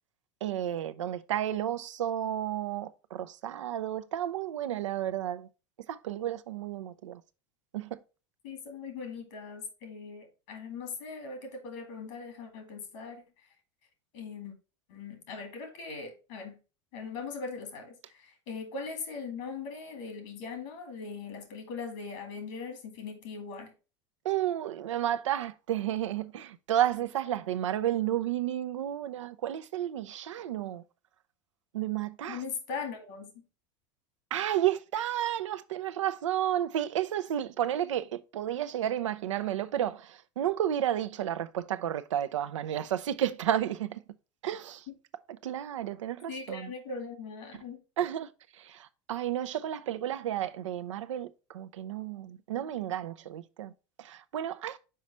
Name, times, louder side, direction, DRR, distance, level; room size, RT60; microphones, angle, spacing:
voice 1, 0.4-5.5 5.9-7.2 7.7-8.0 24.2-30.8 31.7-32.4 34.3-44.0 44.4-44.8 45.4-46.7 48.0-53.7 54.0-54.8, right 11 dB, 85° right, 0.5 m, -32 dB
voice 2, 8.4-13.2 14.1-14.5 14.9-16.6 16.9-23.7 32.3-33.4 44.9-45.0 46.3-47.8, left 5 dB, 70° left, 2.2 m, -40 dB
5.7 x 4.9 x 4.1 m
hypercardioid pair, 85°, 15 cm